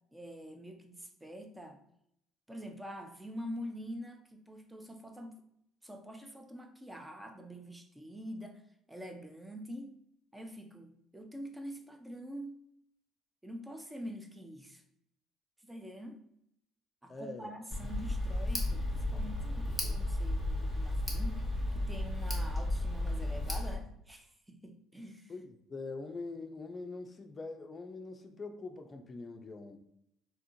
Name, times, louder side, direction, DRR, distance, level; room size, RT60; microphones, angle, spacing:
voice 1, 0.1-1.8 2.5-5.3 5.8-8.6 8.9-9.9 10.3-12.6 13.4-14.8 15.6-16.2 17.0-21.4 21.7-25.3, equal, 10° right, 5 dB, 0.6 m, -45 dB
voice 2, 17.1-17.5 25.3-29.8, left 3 dB, 35° left, 6 dB, 0.5 m, -43 dB
Tick, 17.7-23.7, left 1 dB, 10° left, 1.1 m, -33 dB
3.5 x 2.8 x 2.6 m, 0.75 s
hypercardioid pair, 55°, 0 cm